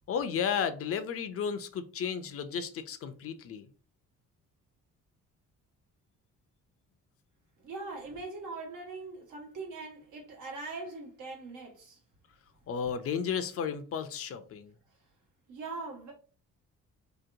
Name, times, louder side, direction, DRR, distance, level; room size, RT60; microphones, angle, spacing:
voice 1, 0.1-3.7 12.7-14.7, left 7 dB, 50° left, 0.4 m, -33 dB
voice 2, 7.6-12.0 15.5-16.1, right 3 dB, 85° right, 1.2 m, -41 dB
2.8 x 2.0 x 2.5 m
cardioid pair, 90°, 30 cm